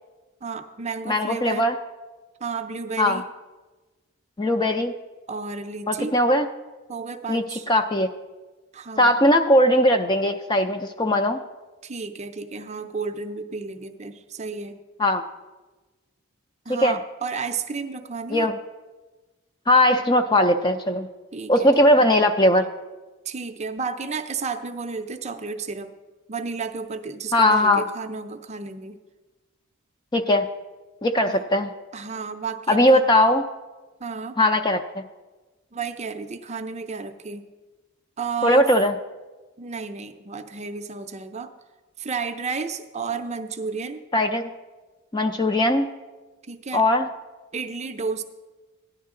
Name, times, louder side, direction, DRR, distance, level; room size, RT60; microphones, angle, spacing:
voice 1, 0.4-1.7 2.4-3.3 5.3-6.2 6.9-7.7 8.7-9.2 11.8-14.8 16.7-18.5 21.3-22.1 23.3-25.9 26.3-29.0 31.3-31.4 31.9-32.8 34.0-34.4 35.7-37.4 38.2-38.7 39.6-41.5 42.0-44.1 46.5-46.9 47.5-48.2, right 5 dB, 30° right, 7 dB, 0.5 m, -32 dB
voice 2, 1.1-1.8 3.0-3.2 4.4-4.9 5.9-6.5 7.3-8.1 9.0-11.4 15.0-15.2 16.7-17.0 18.3-18.6 19.7-21.1 21.5-22.7 27.3-27.8 30.1-30.5 31.0-31.7 32.7-33.4 34.4-35.0 38.4-38.9 44.1-44.5 45.1-45.9 46.7-47.1, left 1 dB, 20° left, 7 dB, 0.4 m, -19 dB
14.5 x 10.5 x 3.7 m, 1.2 s
head